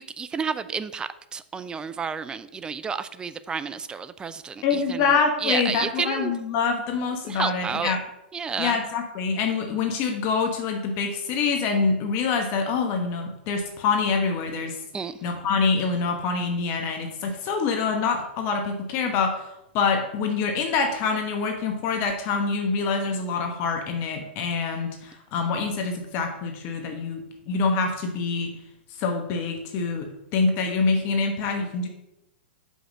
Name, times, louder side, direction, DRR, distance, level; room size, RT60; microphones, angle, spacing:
voice 1, 0.0-6.3 7.2-8.0 8.3-8.8 14.9-15.1, right 6 dB, 15° right, 13 dB, 0.4 m, -31 dB
voice 2, 4.6-8.0 8.6-14.8 15.2-19.5 19.7-28.5 29.0-31.9, left 4 dB, 40° left, 3 dB, 1.1 m, -25 dB
5.6 x 5.5 x 6.2 m, 0.87 s
hypercardioid pair, 115°, 6 cm